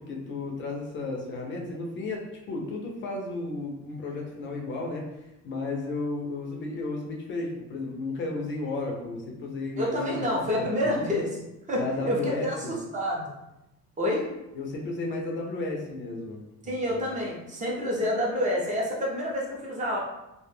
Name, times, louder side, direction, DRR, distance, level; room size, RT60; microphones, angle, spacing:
voice 1, 0.0-11.0 11.7-12.8 14.5-17.0, left 2 dB, 40° left, 0 dB, 0.4 m, -33 dB
voice 2, 9.8-11.4 11.7-12.2 12.4-13.3 14.0-14.3 16.7-20.0, left 1 dB, 25° right, -3 dB, 0.5 m, -28 dB
2.1 x 2.0 x 3.1 m, 0.93 s
cardioid pair, 150°, 30 cm